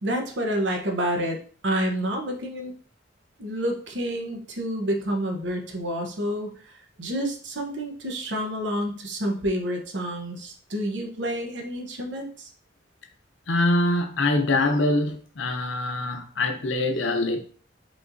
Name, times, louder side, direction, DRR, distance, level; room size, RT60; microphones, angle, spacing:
voice 1, 0.0-1.4 1.6-2.7 3.4-12.5, equal, 70° right, 0.9 m, -29 dB
voice 2, 13.5-17.4, left 2 dB, 80° left, 0.7 m, -24 dB
5.0 x 3.2 x 2.6 m
head